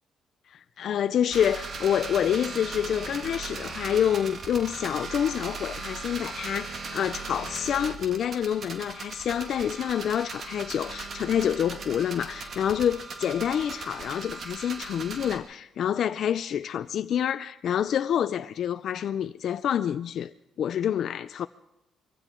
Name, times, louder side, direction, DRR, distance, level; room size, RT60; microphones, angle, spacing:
voice 1, 0.5-21.5, left 9 dB, 65° left, 0.5 m, -27 dB
sound 1, 1.3-15.4, right 4 dB, 55° right, 2.0 m, -38 dB
23.0 x 16.0 x 3.8 m
cardioid pair, 90°, 0 cm